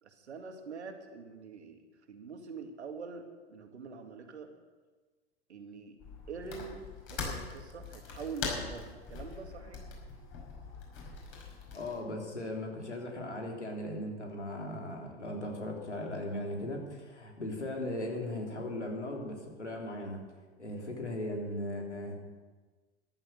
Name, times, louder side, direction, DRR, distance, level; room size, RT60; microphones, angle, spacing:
voice 1, 0.0-4.5 5.5-6.0 6.3-9.9, right 5 dB, 75° right, 5 dB, 2.1 m, -45 dB
sound 1, 6.0-12.0, left 4 dB, 35° left, 5.3 m, -42 dB
voice 2, 11.7-20.2 20.6-22.2, left 1 dB, 90° left, 0 dB, 3.2 m, -38 dB
14.0 x 11.5 x 6.5 m, 1.3 s
figure-of-eight pair, 95°, 34 cm